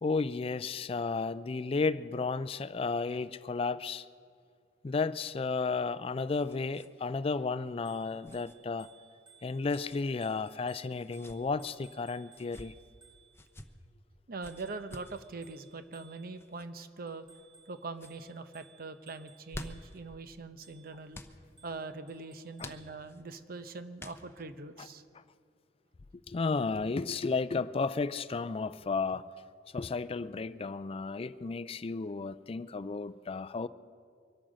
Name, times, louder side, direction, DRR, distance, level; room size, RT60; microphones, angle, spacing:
voice 1, 0.0-4.1 4.8-8.9 9.4-12.7 22.6-22.7 26.3-29.3 29.7-33.7, left 4 dB, 30° left, 0.4 m, -33 dB
sound 1, 6.1-6.9 7.2-7.3 8.2-8.5 9.7-10.0 10.9-11.4 12.3-12.7 13.3-13.7 14.4-15.2 16.4-16.7 17.3-17.7 17.9-18.2 19.2-20.0 21.1-21.4 22.6-23.2 24.0-24.5, left 1 dB, 15° left, 0.7 m, -48 dB
Bicycle bell, 7.7-13.5 14.4-16.5 17.1-20.0 20.6-21.0 21.6-22.9, right 6 dB, 30° right, 3.0 m, -61 dB
voice 2, 14.3-17.3 17.7-21.2 21.6-25.0, right 3 dB, 55° right, 0.8 m, -42 dB
24.0 x 8.8 x 6.3 m
head